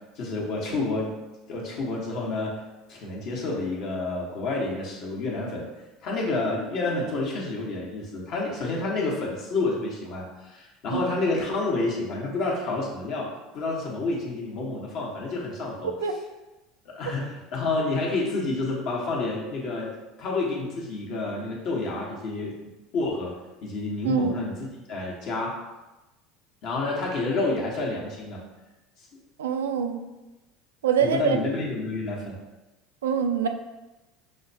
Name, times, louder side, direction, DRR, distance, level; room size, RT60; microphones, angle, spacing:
voice 1, 0.2-1.1 1.5-2.6 2.9-5.6 6.0-13.3 13.5-15.9 16.8-19.9 20.2-22.5 22.9-23.3 23.6-25.6 26.6-28.4 31.0-32.3, left 3 dB, 60° left, -3 dB, 1.1 m, -29 dB
voice 2, 24.0-24.4 29.4-30.0 30.8-31.4 33.0-33.5, right 7 dB, 90° right, 6 dB, 0.3 m, -25 dB
5.6 x 2.2 x 2.7 m, 1.1 s
hypercardioid pair, 80°, 0 cm